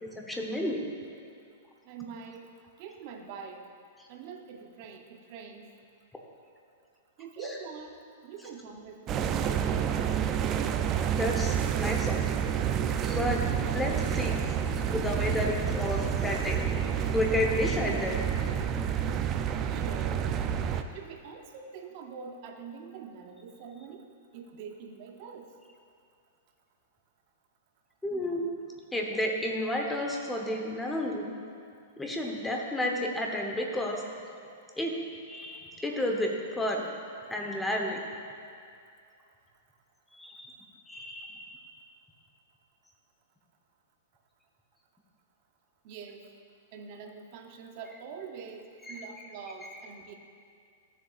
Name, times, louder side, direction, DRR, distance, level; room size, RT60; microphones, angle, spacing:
voice 1, 0.0-0.8 11.2-12.5 13.0-13.4 13.7-16.6 17.1-18.2 28.0-28.5 28.9-31.3 32.0-34.1 34.8-34.9 35.3-36.9 37.3-38.0 40.1-40.5 40.9-41.4 48.9-49.1 49.7-49.8, left 1 dB, 5° left, 1 dB, 1.0 m, -31 dB
voice 2, 1.9-2.5 2.8-3.7 4.1-5.7 7.2-8.0 8.2-9.3 19.7-20.3 20.9-24.0 24.3-25.5 45.8-46.2 46.7-50.2, right 5 dB, 45° right, 3 dB, 0.8 m, -44 dB
sound 1, 9.1-20.8, right 8 dB, 30° right, 0.4 m, -29 dB
14.0 x 7.0 x 2.5 m, 2.4 s
hypercardioid pair, 140°, 0 cm